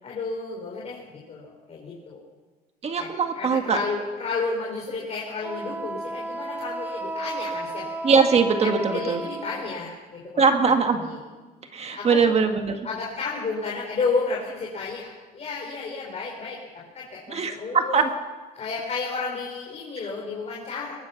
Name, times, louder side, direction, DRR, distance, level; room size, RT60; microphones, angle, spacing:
voice 1, 0.0-2.2 3.0-7.9 8.6-11.2 11.9-12.3 12.8-17.9 18.5-20.9, left 4 dB, 40° left, -2 dB, 4.7 m, -32 dB
voice 2, 2.8-3.8 8.0-9.2 10.4-11.0 11.7-12.8 17.3-18.1, right 5 dB, 40° right, 6 dB, 1.8 m, -21 dB
Wind instrument woodwind instrument, 5.4-9.9, right 2 dB, 10° right, 1.5 m, -33 dB
21.5 x 21.0 x 6.0 m, 1.3 s
cardioid pair, 110°, 17 cm